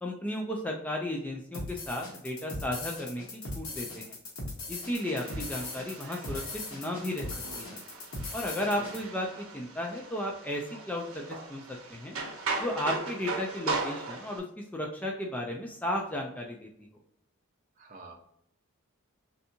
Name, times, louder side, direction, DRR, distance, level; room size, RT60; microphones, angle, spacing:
voice 1, 0.0-4.1 4.7-7.3 7.6-7.8 8.3-11.6 11.9-12.2 12.6-14.4 14.7-16.7, left 1 dB, 5° left, 0 dB, 0.3 m, -34 dB
sound 1, 1.5-9.0, left 2 dB, 75° left, 1.1 m, -39 dB
sound 2, 4.9-14.4, right 3 dB, 80° right, 0.7 m, -38 dB
voice 2, 8.6-9.0 17.8-18.1, right 2 dB, 40° right, 2 dB, 0.7 m, -48 dB
3.3 x 2.7 x 2.7 m, 0.74 s
head